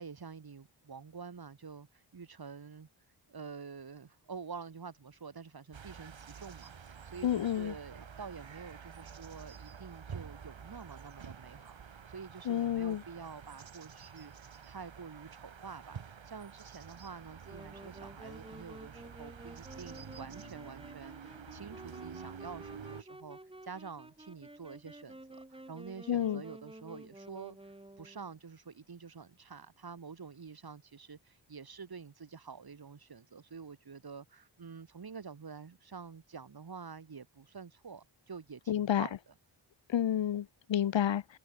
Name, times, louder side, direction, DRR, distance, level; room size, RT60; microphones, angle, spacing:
voice 1, 0.0-2.9 3.3-39.3, right 5 dB, 50° right, 2.2 m, -48 dB
sound 1, 5.7-23.0, right 7 dB, 70° right, 2.9 m, -49 dB
voice 2, 7.2-7.7 12.5-13.0 26.1-26.4 38.7-39.1 39.9-41.4, left 10 dB, 65° left, 0.8 m, -30 dB
Wind instrument woodwind instrument, 17.4-28.4, right 1 dB, 10° right, 2.1 m, -51 dB
cardioid pair, 65°, 48 cm